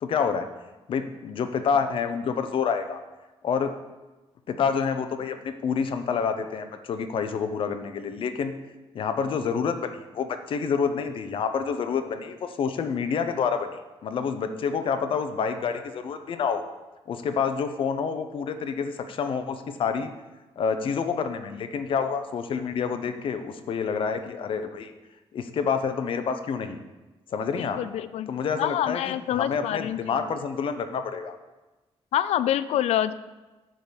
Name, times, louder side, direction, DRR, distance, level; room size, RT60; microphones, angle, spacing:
voice 1, 0.0-0.5 0.9-3.0 3.4-3.8 4.5-8.5 8.9-16.6 17.1-20.1 20.6-24.9 25.3-26.8 27.3-27.8 28.3-31.4, left 6 dB, 55° left, 8 dB, 0.7 m, -28 dB
voice 2, 27.6-28.3 28.6-30.0 32.1-33.1, left 11 dB, 80° left, 14 dB, 0.4 m, -26 dB
10.5 x 3.9 x 7.0 m, 1.1 s
cardioid pair, 160°, 11 cm